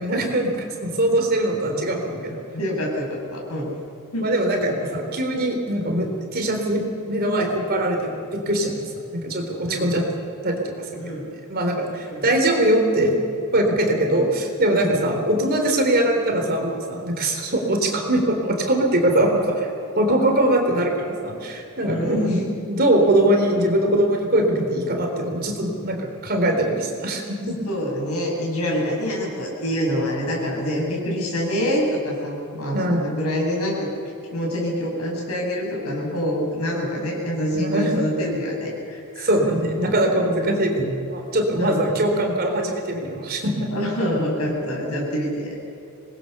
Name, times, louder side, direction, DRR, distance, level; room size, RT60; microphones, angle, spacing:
voice 1, 0.0-2.4 4.2-8.8 9.1-10.0 10.4-11.1 11.5-13.2 13.5-19.7 20.0-27.6 32.7-33.2 37.5-38.1 39.2-43.7, right 1 dB, 45° right, 2 dB, 3.9 m, -22 dB
voice 2, 2.5-3.7 4.1-4.3 9.7-9.9 11.0-11.3 11.9-12.3 14.8-15.0 21.8-22.4 27.7-33.9 34.3-39.3 40.2-40.6 41.6-41.8 43.7-45.5, equal, 75° left, -2 dB, 7.7 m, -26 dB
26.0 x 20.5 x 6.8 m, 2.6 s
head